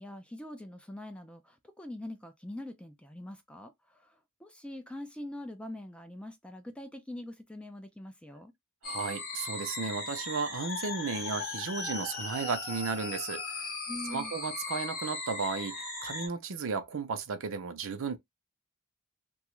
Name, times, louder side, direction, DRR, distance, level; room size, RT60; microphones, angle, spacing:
voice 1, 0.0-8.5 13.9-14.3, left 1 dB, 5° left, 0.3 m, -43 dB
sound 1, 8.8-16.3, left 3 dB, 45° left, 1.1 m, -38 dB
voice 2, 8.8-13.6 14.1-15.7 16.0-18.2, right 4 dB, 65° right, 0.5 m, -34 dB
2.8 x 2.3 x 3.0 m
head